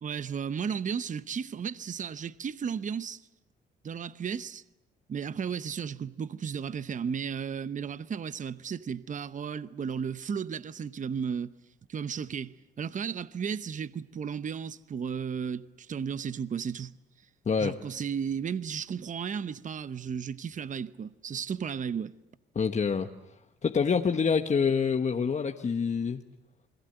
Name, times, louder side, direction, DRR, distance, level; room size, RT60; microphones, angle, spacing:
voice 1, 0.0-3.2 3.8-4.6 5.1-11.5 11.9-16.9 17.6-22.1, right 7 dB, 40° right, 0.8 m, -34 dB
voice 2, 22.5-23.1 23.6-26.2, left 6 dB, 35° left, 1.3 m, -26 dB
28.5 x 21.5 x 8.0 m
supercardioid pair, 75°, 20 cm